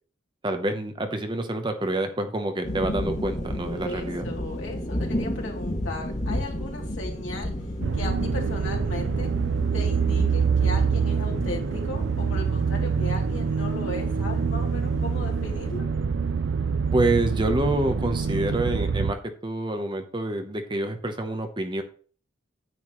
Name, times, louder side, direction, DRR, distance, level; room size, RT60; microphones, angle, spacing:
voice 1, 0.4-4.3 16.9-21.8, right 1 dB, 25° right, 6 dB, 0.9 m, -27 dB
sound 1, 2.6-15.8, left 1 dB, 35° left, 2.2 m, -33 dB
voice 2, 3.8-7.5 7.9-9.3 9.7-15.9, left 2 dB, 70° left, -1 dB, 3.0 m, -37 dB
sound 2, 7.8-19.1, right 5 dB, 60° right, 0.5 m, -25 dB
9.4 x 9.3 x 3.1 m, 0.43 s
head